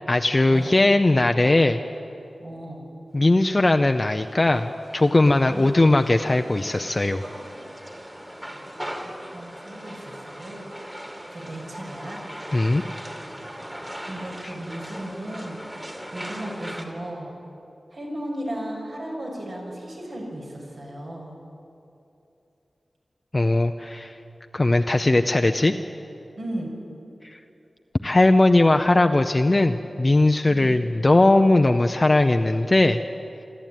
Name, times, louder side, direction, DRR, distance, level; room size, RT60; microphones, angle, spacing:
voice 1, 0.1-1.8 3.1-7.2 12.5-12.8 14.4-14.5 23.3-24.1 24.5-25.7 27.2-27.4 28.0-33.0, left 2 dB, 30° left, 6 dB, 0.6 m, -19 dB
voice 2, 2.4-2.8 8.5-8.6 9.0-10.6 11.3-12.2 14.1-15.6 16.1-17.3 17.9-21.3 26.4-26.7 30.5-30.7, right 1 dB, 65° right, -2 dB, 6.4 m, -35 dB
sound 1, 3.4-16.8, equal, 15° right, 2.4 m, -39 dB
26.5 x 12.5 x 9.2 m, 2.8 s
wide cardioid pair, 100°, 0 cm